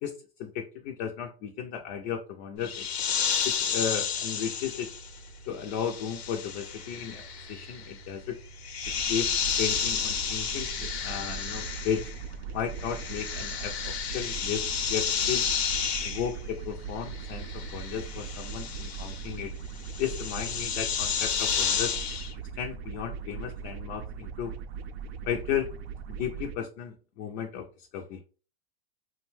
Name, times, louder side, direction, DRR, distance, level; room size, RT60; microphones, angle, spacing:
voice 1, 0.0-2.9 3.4-4.9 5.5-7.2 7.5-8.4 9.1-9.3 9.6-12.1 12.5-15.5 16.0-19.5 20.0-21.9 22.6-24.5 25.2-25.7 26.2-28.2, left 8 dB, 40° left, 3 dB, 0.4 m, -34 dB
sound 1, 2.6-12.3 12.6-22.3, left 7 dB, 80° left, 0.8 m, -32 dB
sound 2, 8.8-26.5, right 6 dB, 70° right, 0.5 m, -40 dB
2.6 x 2.2 x 3.1 m, 0.37 s
hypercardioid pair, 125°, 32 cm